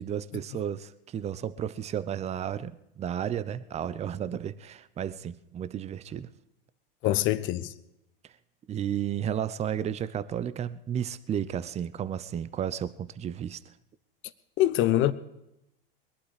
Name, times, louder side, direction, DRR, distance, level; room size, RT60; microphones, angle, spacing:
voice 1, 0.0-6.3 8.7-13.6, right 9 dB, 20° right, 0.7 m, -33 dB
voice 2, 7.0-7.7 14.6-15.1, left 14 dB, 40° left, 1.1 m, -24 dB
21.5 x 11.5 x 5.0 m
hypercardioid pair, 115°, 29 cm